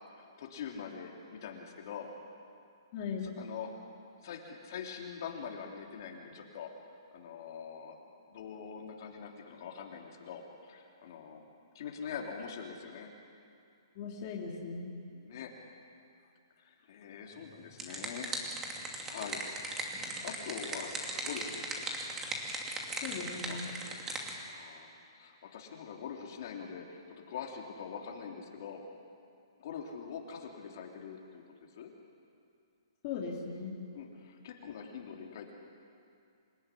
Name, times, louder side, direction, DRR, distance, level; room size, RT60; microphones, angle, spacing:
voice 1, 0.2-2.1 3.2-3.7 4.2-6.7 7.1-8.0 8.3-11.4 11.7-13.1 15.1-15.5 16.6-18.3 19.1-19.4 19.7-21.7 23.4-23.6 24.4-28.8 29.6-31.9 33.9-35.5, left 7 dB, 50° left, 0 dB, 3.3 m, -44 dB
voice 2, 2.9-3.3 13.9-14.9 22.9-23.7 33.0-33.8, left 5 dB, 30° left, -3 dB, 3.1 m, -38 dB
sound 1, 17.5-24.3, right 2 dB, 10° right, 2.6 m, -38 dB
27.5 x 16.5 x 10.0 m, 2.5 s
hypercardioid pair, 160°, 3 cm